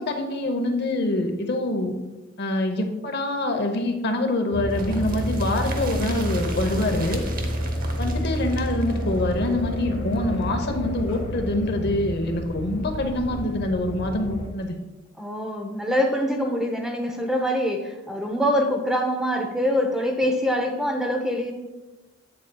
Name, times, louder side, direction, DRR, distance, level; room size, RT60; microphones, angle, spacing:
voice 1, 0.0-1.9 2.4-7.2 8.0-14.8, left 1 dB, 55° left, 5 dB, 0.8 m, -25 dB
sound 1, 4.5-14.5, equal, 80° left, 1.8 m, -29 dB
sound 2, 4.7-10.4 10.7-10.8 11.1-11.2, right 4 dB, 45° right, 0.8 m, -40 dB
voice 2, 15.2-21.5, equal, 5° right, 3 dB, 0.7 m, -24 dB
8.2 x 7.6 x 2.2 m, 1.1 s
head